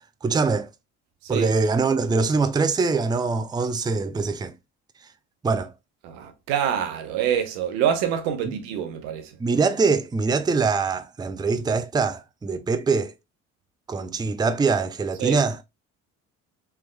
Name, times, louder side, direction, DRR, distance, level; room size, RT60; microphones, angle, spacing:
voice 1, 0.2-0.7 1.3-4.5 5.4-5.7 8.5-8.6 9.4-13.1 13.9-15.6, right 4 dB, 10° right, 0.5 m, -23 dB
voice 2, 6.0-9.3 15.2-15.4, right 9 dB, 85° right, 1.0 m, -26 dB
3.5 x 3.4 x 3.2 m
supercardioid pair, 70°, 36 cm